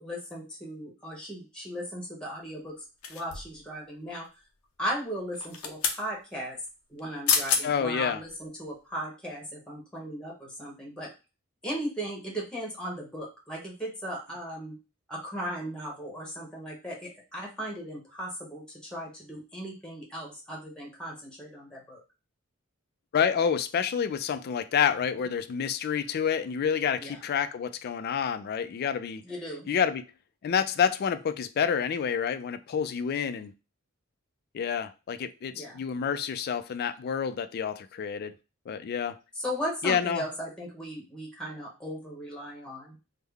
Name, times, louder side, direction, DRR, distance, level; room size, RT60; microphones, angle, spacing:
voice 1, 0.0-2.8 3.1-4.3 4.8-6.6 6.9-11.1 11.6-14.7 15.1-22.0 27.0-27.2 29.2-29.7 35.5-35.8 39.3-43.0, equal, 5° left, 0.9 m, -37 dB
sound 1, 3.0-3.6 5.3-6.0 7.0-7.1 7.3-7.6 8.2-8.3, left 6 dB, 90° left, 0.6 m, -28 dB
voice 2, 7.6-8.2 23.1-29.2 29.7-30.1 30.4-33.5 34.5-38.3 38.7-39.2 39.8-40.2, left 7 dB, 50° left, 0.3 m, -28 dB
3.6 x 2.1 x 3.3 m
head